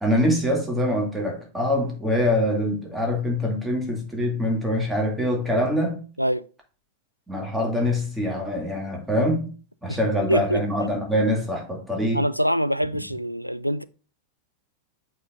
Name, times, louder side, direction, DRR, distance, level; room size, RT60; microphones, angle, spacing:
voice 1, 0.0-6.0 7.3-9.5 9.8-12.2, left 1 dB, 5° right, 2.4 m, -24 dB
voice 2, 10.3-10.6 12.1-13.8, equal, 90° right, 0.3 m, -24 dB
8.2 x 5.1 x 2.5 m
figure-of-eight pair, 90°, 0 cm